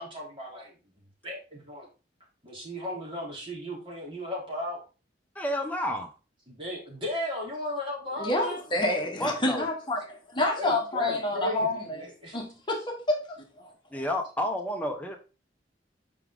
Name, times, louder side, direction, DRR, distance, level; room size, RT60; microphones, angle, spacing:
voice 1, 0.0-1.9 2.4-4.8 6.5-8.6 10.5-12.4, left 1 dB, 30° right, 3.3 m, -36 dB
voice 2, 5.3-6.1 9.2-9.6 13.9-15.2, left 1 dB, 10° left, 1.1 m, -30 dB
voice 3, 8.2-12.1 12.3-13.7, left 2 dB, 25° left, 1.4 m, -28 dB
5.4 x 5.1 x 3.9 m
head